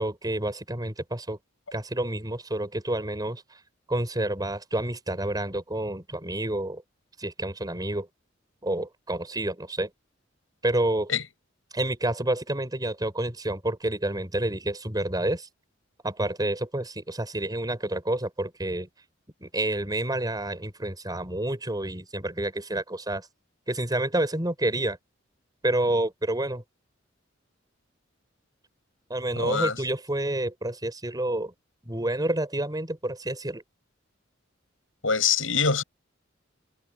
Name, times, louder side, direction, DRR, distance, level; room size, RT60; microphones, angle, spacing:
voice 1, 0.0-1.4 1.7-3.4 3.9-6.8 7.2-8.1 8.6-9.9 10.6-11.1 11.7-15.5 16.0-18.9 19.4-23.3 23.7-25.0 25.6-26.6 29.1-31.5 31.8-33.6, right 1 dB, 20° right, 6.0 m, -29 dB
voice 2, 29.4-29.8 35.0-35.8, left 6 dB, 90° left, 7.8 m, -24 dB
head